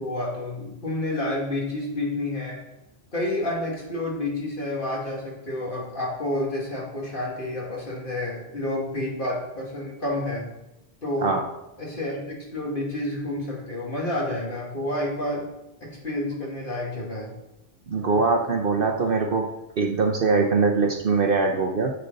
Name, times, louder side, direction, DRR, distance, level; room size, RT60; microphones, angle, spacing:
voice 1, 0.0-2.6 3.1-10.4 11.0-11.3 11.8-15.5 15.8-17.3, left 1 dB, 45° left, -4 dB, 2.6 m, -29 dB
voice 2, 17.9-19.5 19.8-21.9, right 4 dB, 50° right, 4 dB, 0.9 m, -22 dB
10.0 x 6.6 x 4.0 m, 0.91 s
omnidirectional pair, 1.3 m